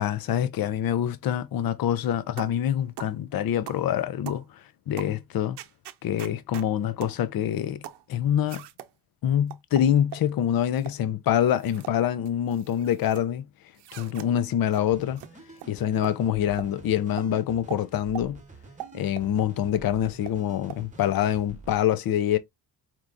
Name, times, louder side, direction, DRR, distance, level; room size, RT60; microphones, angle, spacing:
voice 1, 0.0-4.4 4.9-5.6 6.0-7.8 8.1-8.6 9.2-13.4 13.9-15.2 15.7-18.4 18.9-22.4, left 10 dB, 60° left, 0.6 m, -25 dB
sound 1, 2.4-2.6 3.0-3.2 3.7-3.9 4.3-4.5 5.0-5.2 5.6-6.7 7.0-7.2 7.8-8.0 8.5-8.9 9.5-10.3 10.8-11.0 11.5-12.0 12.3-13.2 13.8-14.3 14.7-14.8 15.2-15.3 15.6-15.7 16.0-16.1 16.6-16.7 17.2-17.3 17.7-17.8 18.2-18.3 18.8-19.3 19.7-19.8 20.3-20.4 20.7-20.8, right 12 dB, 85° right, 0.6 m, -41 dB
sound 2, 14.9-21.8, right 4 dB, 20° right, 1.0 m, -48 dB
4.5 x 3.5 x 2.5 m
cardioid pair, 115°, 40 cm